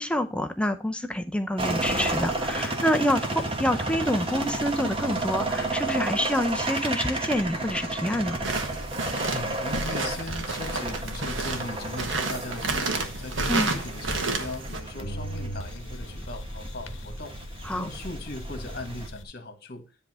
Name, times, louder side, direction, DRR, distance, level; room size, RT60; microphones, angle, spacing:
voice 1, 0.0-8.4 13.5-13.7 17.6-17.9, left 1 dB, 5° left, 0.5 m, -27 dB
sound 1, 1.6-19.1, right 2 dB, 25° right, 1.1 m, -32 dB
sound 2, 8.4-14.8, right 3 dB, 65° right, 1.3 m, -31 dB
voice 2, 9.2-17.3 17.7-19.8, left 2 dB, 50° left, 1.5 m, -39 dB
sound 3, 9.7-14.7 15.0-19.2, equal, 65° left, 1.0 m, -44 dB
10.0 x 3.5 x 6.2 m
head